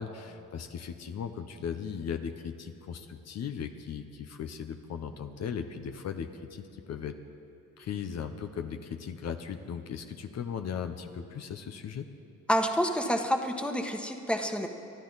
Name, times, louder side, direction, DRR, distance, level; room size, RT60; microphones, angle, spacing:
voice 1, 0.0-7.2 7.8-12.0, left 7 dB, 60° left, 7 dB, 0.9 m, -37 dB
voice 2, 12.5-14.7, equal, 5° left, 4 dB, 1.3 m, -28 dB
24.0 x 13.0 x 4.1 m, 2.8 s
cardioid pair, 90°, 30 cm